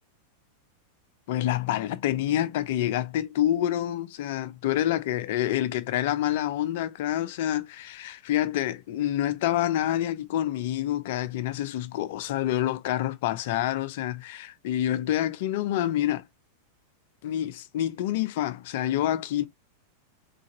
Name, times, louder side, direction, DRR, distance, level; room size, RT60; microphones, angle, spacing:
voice 1, 1.3-16.2 17.2-19.5, left 12 dB, 50° left, 0.5 m, -27 dB
3.8 x 3.2 x 2.8 m
figure-of-eight pair, 90°, 0 cm